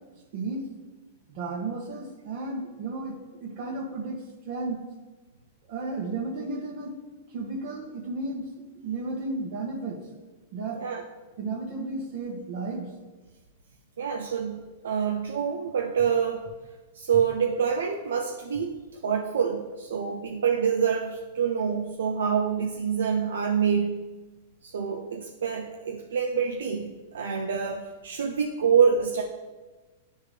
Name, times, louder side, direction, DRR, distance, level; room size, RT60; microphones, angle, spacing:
voice 1, 0.3-0.7 1.3-4.8 5.7-6.9 7.3-8.5 8.7-10.0 10.5-10.8 11.4-12.9, right 3 dB, 50° right, 0 dB, 1.5 m, -33 dB
voice 2, 10.7-11.0 14.0-16.4 16.9-24.0 24.6-29.2, right 7 dB, 80° right, 1 dB, 0.5 m, -26 dB
9.8 x 3.6 x 3.3 m, 1.2 s
hypercardioid pair, 125°, 0 cm